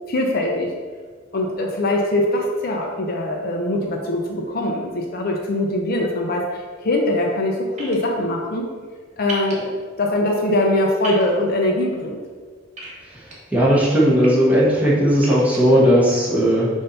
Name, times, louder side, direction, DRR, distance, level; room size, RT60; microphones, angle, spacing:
voice 1, 0.1-0.7 1.3-8.7 9.2-9.7 10.0-12.2, left 1 dB, 45° left, 1 dB, 0.6 m, -22 dB
sound 1, 7.8-8.0 9.3-9.5 11.0-11.2 12.8-13.3 14.0-14.3 15.1-15.6, right 1 dB, 35° right, 1.5 m, -33 dB
voice 2, 13.5-16.7, equal, 5° right, -6 dB, 1.3 m, -16 dB
6.8 x 2.8 x 5.6 m, 1.5 s
head